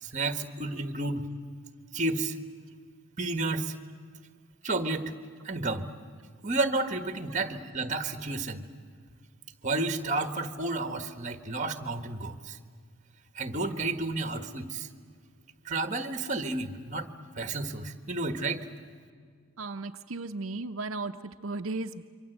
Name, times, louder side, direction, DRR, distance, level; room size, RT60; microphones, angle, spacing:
voice 1, 0.0-1.3 1.9-2.4 3.2-3.7 4.6-5.1 5.4-5.9 6.4-8.7 9.6-12.6 13.3-14.9 15.6-17.1 17.3-18.7, right 2 dB, 35° right, 8 dB, 1.6 m, -31 dB
voice 2, 19.6-22.1, right 3 dB, 80° right, 6 dB, 0.8 m, -35 dB
27.0 x 24.5 x 8.0 m, 2.1 s
head